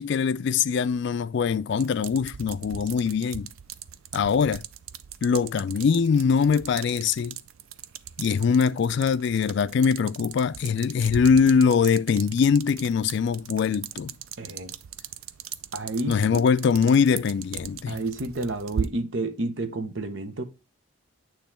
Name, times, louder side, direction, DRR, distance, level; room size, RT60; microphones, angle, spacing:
voice 1, 0.0-3.5 4.1-4.6 5.2-7.4 8.2-14.1 16.1-18.0, left 6 dB, 55° left, 0.3 m, -22 dB
sound 1, 1.7-18.9, right 8 dB, 80° right, 0.4 m, -39 dB
voice 2, 14.4-14.7 15.7-16.4 17.9-20.4, right 2 dB, 60° right, 0.9 m, -30 dB
8.7 x 3.1 x 4.3 m
head